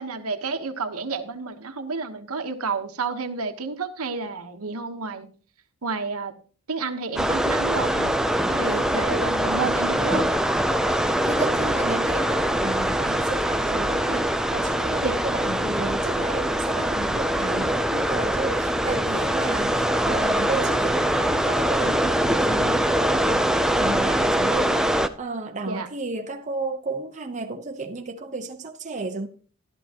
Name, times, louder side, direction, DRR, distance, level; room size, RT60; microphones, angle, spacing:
voice 1, 0.0-5.3 5.8-6.3 6.7-8.1 8.6-10.4 15.0-15.2 25.7-25.9, right 4 dB, 75° right, 1.2 m, -30 dB
sound 1, 7.2-25.1, right 1 dB, ahead, 0.4 m, -23 dB
voice 2, 8.5-8.8 9.1-9.8 10.9-29.3, right 3 dB, 30° right, 0.8 m, -33 dB
13.5 x 12.0 x 2.9 m
head